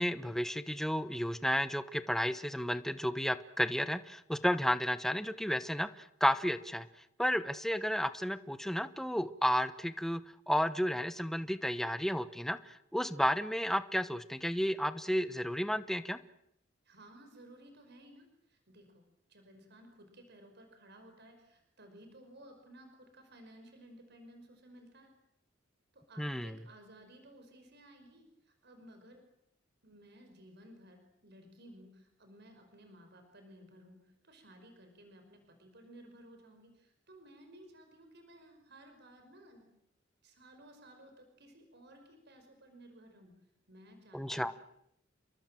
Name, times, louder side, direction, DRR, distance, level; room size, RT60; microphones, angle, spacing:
voice 1, 0.0-6.9 7.2-16.2 26.2-26.6 44.1-44.5, equal, ahead, 11 dB, 0.9 m, -32 dB
voice 2, 16.9-19.0 19.3-25.1 25.9-29.2 29.8-39.8 40.2-43.3 43.7-44.5, right 1 dB, 60° right, 6 dB, 5.6 m, -57 dB
30.0 x 22.5 x 7.7 m, 0.78 s
head